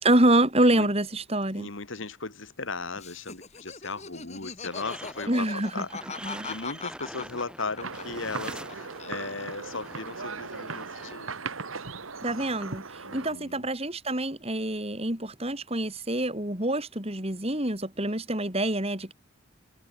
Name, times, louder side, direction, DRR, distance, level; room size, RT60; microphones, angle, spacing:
voice 1, 0.0-1.7 5.3-5.8 6.2-6.5 12.2-19.1, right 1 dB, 30° right, 4.3 m, -26 dB
voice 2, 1.6-5.9 6.2-11.3 13.0-13.6, left 3 dB, 70° left, 2.3 m, -37 dB
Laughter, 3.0-8.7 9.0-9.8, left 5 dB, 35° left, 3.5 m, -40 dB
sound 1, 4.7-11.1, right 1 dB, 5° right, 7.2 m, -45 dB
sound 2, 7.8-13.3, right 4 dB, 85° right, 2.0 m, -38 dB
head